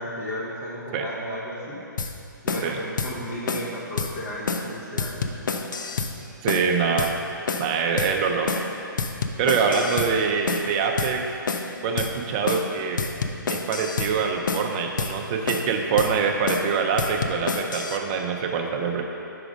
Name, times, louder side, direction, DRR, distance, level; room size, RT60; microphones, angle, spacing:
voice 1, 0.0-1.8 2.4-5.3 7.6-7.8 9.7-9.8, equal, 40° left, -6 dB, 1.1 m, -34 dB
sound 1, 2.0-2.1 2.5-2.7 3.0-3.1 3.5-3.7 4.0-4.1 4.5-4.7 5.0-6.1 6.5-6.7 7.0-7.1 7.5-7.7 8.0-8.1 8.5-8.7 9.0-10.1 10.5-10.7 11.0-11.1 11.5-11.7 12.0-12.1 12.5-12.7 13.0-14.1 14.5-14.7 15.0-15.1 15.5-15.7 16.0-16.1 16.5-16.7 17.0-18.0, left 4 dB, 65° left, 0.5 m, -28 dB
voice 2, 6.4-7.1 7.6-8.6 9.4-11.2 11.8-13.0 13.5-19.0, right 5 dB, 25° right, 2 dB, 0.4 m, -24 dB
5.1 x 4.9 x 5.1 m, 2.9 s
hypercardioid pair, 150°, 11 cm